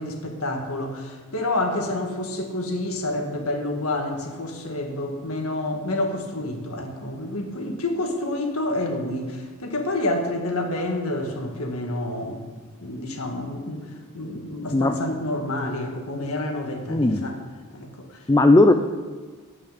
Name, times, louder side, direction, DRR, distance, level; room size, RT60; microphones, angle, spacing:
voice 1, 0.0-12.4 12.8-13.8 14.1-17.4 17.7-18.1, left 1 dB, 75° left, 3 dB, 1.8 m, -28 dB
voice 2, 16.9-17.3 18.3-18.7, left 2 dB, 15° left, 7 dB, 0.5 m, -16 dB
15.0 x 5.8 x 8.4 m, 1.4 s
head